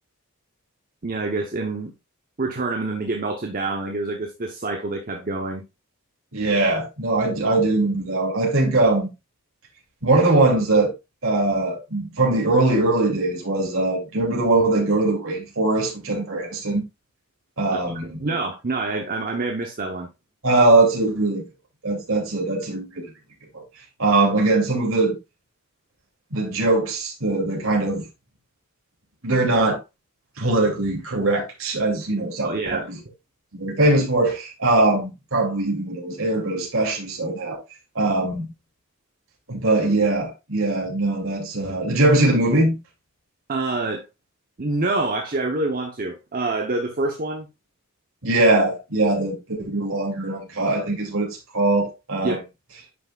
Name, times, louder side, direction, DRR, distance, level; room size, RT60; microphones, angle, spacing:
voice 1, 1.0-1.9 2.4-5.6 17.7-20.1 32.4-32.9 43.5-44.0 44.6-47.5 52.2-52.4, right 3 dB, 40° right, 0.8 m, -26 dB
voice 2, 6.3-9.1 10.0-10.9 11.2-16.8 17.6-18.2 20.4-21.4 21.8-23.1 24.0-25.1 26.3-28.0 29.2-29.8 30.4-33.0 33.5-37.6 37.9-38.5 39.5-42.8 48.2-52.4, right 2 dB, 65° right, 2.5 m, -21 dB
9.6 x 5.8 x 2.3 m
head